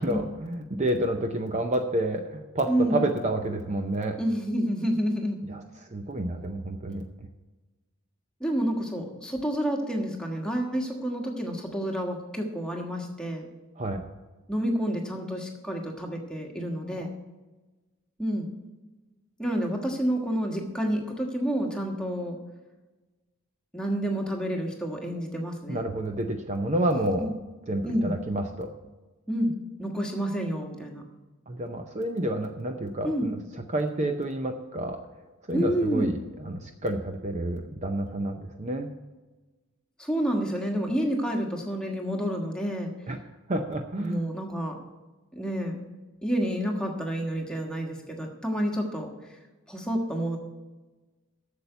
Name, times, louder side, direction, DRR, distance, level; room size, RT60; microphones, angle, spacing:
voice 1, 0.0-4.2 5.4-7.1 13.8-14.0 25.7-27.3 27.7-28.7 31.5-35.0 35.5-38.9 43.1-43.2 43.5-44.3, right 1 dB, 30° right, 5 dB, 0.6 m, -29 dB
voice 2, 2.7-3.0 4.2-5.4 8.4-13.4 14.5-17.1 18.2-18.5 19.4-22.4 23.7-25.8 27.2-27.3 27.8-28.1 29.3-31.0 33.0-33.3 35.5-36.1 40.0-42.9 44.0-44.8 45.3-45.9 46.2-49.1 49.7-50.4, equal, 5° left, 1 dB, 1.3 m, -29 dB
8.3 x 7.0 x 7.9 m, 1.2 s
head